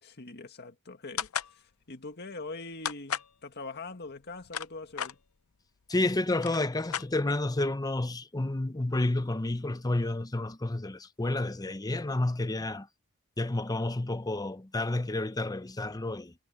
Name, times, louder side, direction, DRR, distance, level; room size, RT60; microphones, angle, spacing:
voice 1, 0.0-5.2, left 3 dB, 50° left, 1.9 m, -43 dB
sound 1, 1.2-1.5 2.8-3.3 4.2-5.1 6.0-6.1 6.3-7.5, left 9 dB, 90° left, 0.7 m, -34 dB
voice 2, 5.9-12.9 13.4-16.3, left 2 dB, 20° left, 0.7 m, -30 dB
head